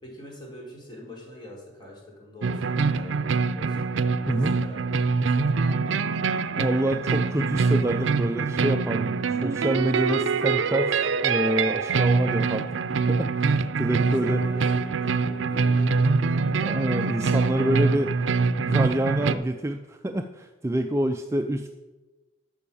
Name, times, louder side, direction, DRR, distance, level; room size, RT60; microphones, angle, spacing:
voice 1, 0.0-3.9 4.2-6.2 14.0-17.0 17.4-18.1, left 1 dB, 25° left, -2 dB, 3.4 m, -44 dB
sound 1, 2.4-19.4, right 4 dB, 80° right, 0.5 m, -24 dB
voice 2, 6.6-9.0 9.3-12.7 13.1-14.4 16.6-18.1 18.6-21.7, right 1 dB, 15° right, 5 dB, 0.4 m, -27 dB
11.5 x 6.1 x 7.0 m, 1.2 s
head